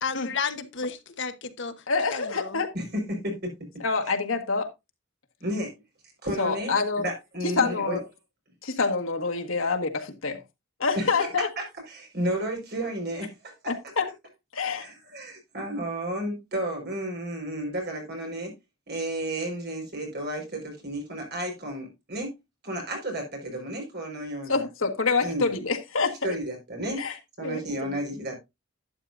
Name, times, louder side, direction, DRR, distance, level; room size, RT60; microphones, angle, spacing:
voice 1, 0.0-1.7 2.1-2.6, left 5 dB, 65° left, 1.1 m, -32 dB
voice 2, 1.9-2.7 3.8-4.7 6.4-7.1 7.4-8.0 8.6-10.4 10.8-11.5 13.7-14.1 14.5-14.9 24.5-26.1 27.0-27.1 27.4-27.9, left 4 dB, 80° left, 1.6 m, -26 dB
voice 3, 2.7-3.5 5.4-5.8 6.2-8.0 10.9-11.2 11.6-13.3 14.8-18.5 18.9-22.3 22.6-24.6 25.2-25.5 26.2-27.0 27.4-28.3, right 1 dB, 55° right, 4.9 m, -32 dB
11.5 x 9.2 x 2.6 m
head